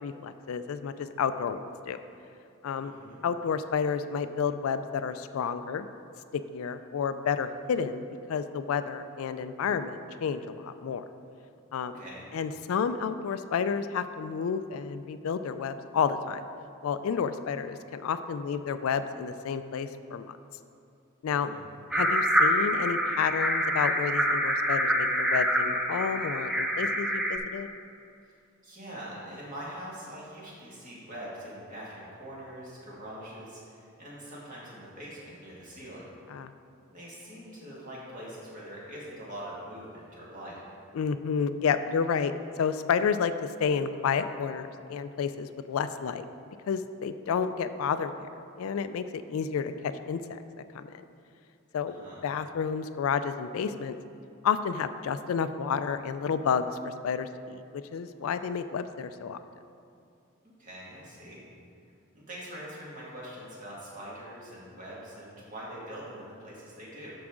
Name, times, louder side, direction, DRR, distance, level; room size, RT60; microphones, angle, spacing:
voice 1, 0.0-2.0 2.6-2.9 3.2-5.9 6.5-8.0 8.3-11.0 11.7-12.0 12.3-16.4 16.8-20.3 21.2-21.5 21.9-27.7 36.3-36.5 40.9-42.3 42.6-43.3 43.6-46.2 46.7-48.3 48.6-50.4 50.7-51.0 51.7-51.9 52.2-54.0 54.4-59.4, left 6 dB, 80° left, 11 dB, 0.3 m, -30 dB
voice 2, 2.8-3.2 11.8-12.3 21.3-21.6 28.6-36.1 36.9-40.6 51.9-52.2 60.6-61.4 62.1-67.1, equal, 35° right, -6 dB, 2.0 m, -43 dB
sound 1, 21.9-27.4, equal, 5° right, 0.4 m, -26 dB
12.0 x 4.8 x 3.7 m, 2.5 s
head